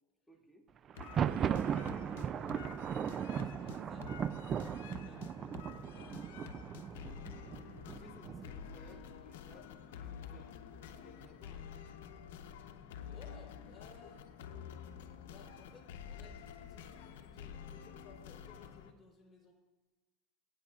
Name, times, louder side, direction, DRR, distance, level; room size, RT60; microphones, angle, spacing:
voice 1, 0.3-0.7 7.8-9.0 9.2-10.5 11.0-11.7, equal, ahead, 1 dB, 1.4 m, -60 dB
sound 1, 0.9-18.9, left 8 dB, 85° left, 0.8 m, -49 dB
Thunder, 0.9-8.7, right 8 dB, 35° right, 0.3 m, -37 dB
voice 2, 2.0-2.8 3.1-6.6 8.8-9.3 10.4-10.9 13.0-14.3 15.2-19.5, left 3 dB, 15° left, -3 dB, 4.0 m, -60 dB
21.0 x 9.1 x 2.4 m, 1.2 s
supercardioid pair, 115°, 0 cm